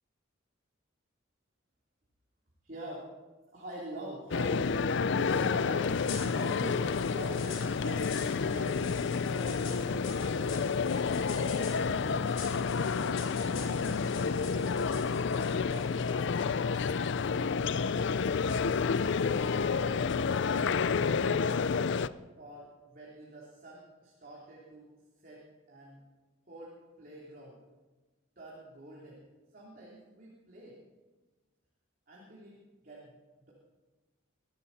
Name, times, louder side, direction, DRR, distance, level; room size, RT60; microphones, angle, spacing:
voice 1, 2.6-3.1 3.5-6.0 6.3-10.8 11.3-12.3 12.9-15.3 15.6-16.0 16.3-18.8 19.3-20.0 20.5-21.4 22.4-24.9 25.2-26.0 26.5-27.6 28.3-29.2 29.5-30.8 32.1-33.1 33.4-33.5, right 1 dB, 45° right, -5 dB, 3.4 m, -46 dB
sound 1, 4.3-22.1, left 5 dB, 60° left, 0.4 m, -30 dB
sound 2, 5.9-16.2, left 7 dB, 80° left, 3.9 m, -47 dB
23.0 x 12.5 x 4.2 m, 1.2 s
head